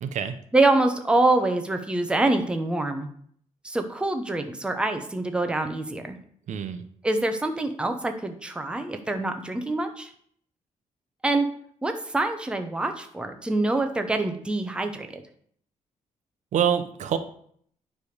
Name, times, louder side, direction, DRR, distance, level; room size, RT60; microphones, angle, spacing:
voice 1, 0.0-0.3 6.5-6.8 16.5-17.2, right 8 dB, 65° right, 10 dB, 0.7 m, -25 dB
voice 2, 0.5-3.1 3.6-6.2 7.0-10.1 11.2-11.5 11.8-15.2, right 2 dB, 5° right, 6 dB, 0.7 m, -25 dB
9.6 x 3.4 x 6.5 m, 0.62 s
wide cardioid pair, 165°, 13 cm